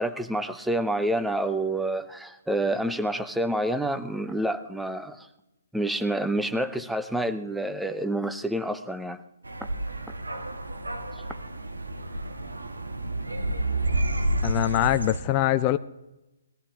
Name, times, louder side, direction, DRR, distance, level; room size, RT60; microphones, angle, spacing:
voice 1, 0.0-5.3 5.7-9.2, right 1 dB, ahead, 10 dB, 0.7 m, -28 dB
sound 1, 9.4-15.2, right 2 dB, 85° right, 1.6 m, -30 dB
voice 2, 14.4-15.8, left 14 dB, 30° left, 11 dB, 0.4 m, -23 dB
20.0 x 14.5 x 3.6 m, 0.97 s
figure-of-eight pair, 135°, 0 cm